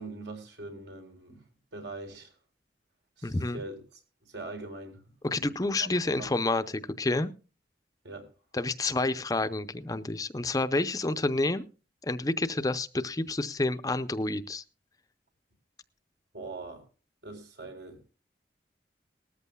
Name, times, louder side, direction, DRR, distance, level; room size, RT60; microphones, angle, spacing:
voice 1, 0.0-1.4 1.7-2.3 3.2-5.0 5.8-5.9 6.2-6.4 8.0-8.3 16.3-16.8 17.2-18.0, right 2 dB, 85° right, 3.8 m, -42 dB
voice 2, 3.2-3.6 5.2-7.3 8.5-11.6 12.0-14.6, left 2 dB, 20° left, 0.5 m, -29 dB
19.5 x 14.0 x 2.2 m
head